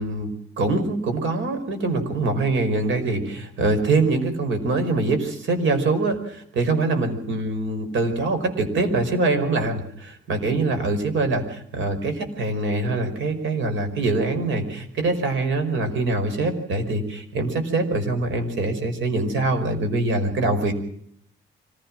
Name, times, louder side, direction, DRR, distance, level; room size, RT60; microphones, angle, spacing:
voice 1, 0.0-20.7, right 2 dB, 75° right, 8 dB, 5.2 m, -24 dB
25.0 x 16.5 x 7.6 m, 0.67 s
cardioid pair, 90°, 20 cm